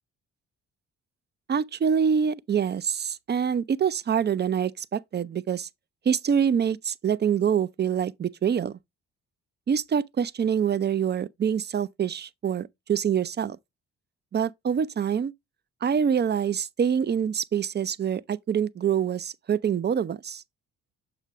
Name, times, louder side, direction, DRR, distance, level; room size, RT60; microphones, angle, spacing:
voice 1, 1.5-5.7 6.1-8.8 9.7-13.6 14.3-15.3 15.8-20.4, right 7 dB, 30° right, 0.5 m, -25 dB
6.5 x 5.0 x 3.0 m
hypercardioid pair, 50°, 36 cm